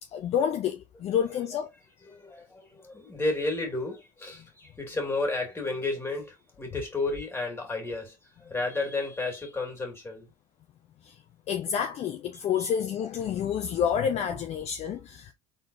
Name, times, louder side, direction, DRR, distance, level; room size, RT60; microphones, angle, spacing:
voice 1, 0.1-1.7 11.0-11.2 11.5-15.3, left 8 dB, 40° left, 0.6 m, -29 dB
voice 2, 2.0-10.3, left 2 dB, 15° left, 2.3 m, -32 dB
4.1 x 3.8 x 2.6 m
hypercardioid pair, 85°, 16 cm